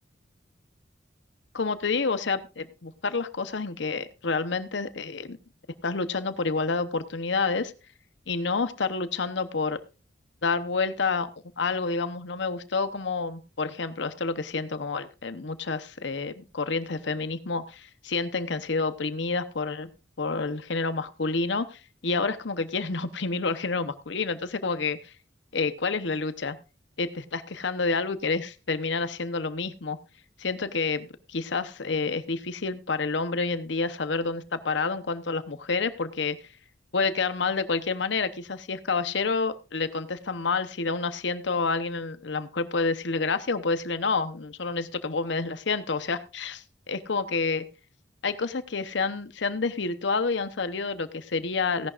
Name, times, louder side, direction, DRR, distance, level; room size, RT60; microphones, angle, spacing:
voice 1, 1.5-5.4 5.8-7.7 8.3-9.8 10.4-11.3 11.6-19.9 20.2-25.1 25.5-26.6 27.0-30.0 30.4-36.4 36.9-47.6 48.2-51.9, left 4 dB, 70° left, 12 dB, 0.9 m, -29 dB
17.0 x 11.0 x 2.5 m, 0.32 s
head